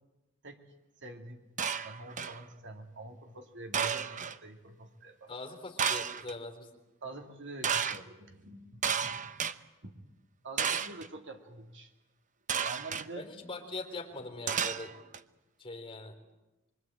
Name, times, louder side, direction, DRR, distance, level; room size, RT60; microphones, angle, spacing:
voice 1, 1.0-1.4 1.8-5.3 7.0-9.3 9.8-10.0 10.4-11.9 12.6-13.3, right 2 dB, 55° right, 5 dB, 2.5 m, -46 dB
sound 1, 1.6-2.4 3.7-4.4 5.8-6.3 7.6-8.0 8.8-9.5 10.6-11.1 12.5-13.1 14.5-15.2, right 7 dB, 35° right, 0.9 m, -32 dB
voice 2, 5.3-6.7 13.2-15.0 15.6-16.1, left 2 dB, 25° left, 3 dB, 3.9 m, -42 dB
26.0 x 24.0 x 8.9 m, 1.0 s
head